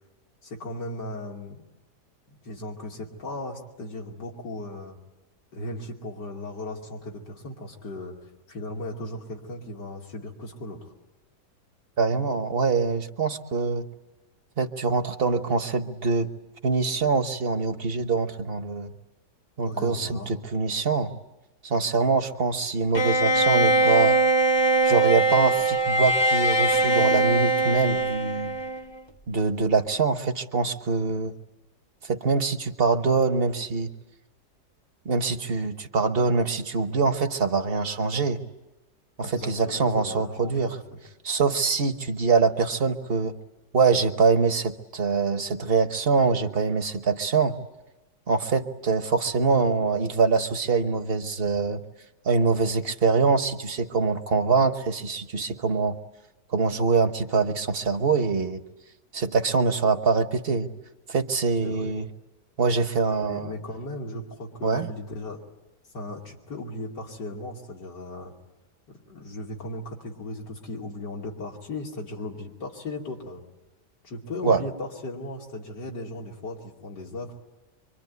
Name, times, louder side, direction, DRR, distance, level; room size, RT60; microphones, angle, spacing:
voice 1, 0.4-1.6 2.4-5.0 5.5-10.9 19.6-20.3 39.2-41.0 61.6-62.0 63.2-65.4 65.9-68.3 69.1-73.4 74.0-77.3, left 1 dB, 90° left, -1 dB, 3.3 m, -37 dB
voice 2, 12.0-13.9 14.6-16.3 16.6-18.9 19.6-21.1 21.6-24.2 24.8-28.6 29.3-31.3 32.0-33.9 35.0-38.4 39.2-40.8 41.2-43.4 43.7-47.5 48.3-51.8 52.2-56.0 56.5-58.6 59.1-60.7 61.1-62.1 62.6-63.5 64.6-64.9 74.4-74.6, right 4 dB, 40° right, 8 dB, 1.2 m, -24 dB
Bowed string instrument, 22.9-29.0, right 2 dB, 20° left, 0.8 m, -21 dB
25.0 x 24.5 x 9.5 m, 1.0 s
omnidirectional pair, 1.8 m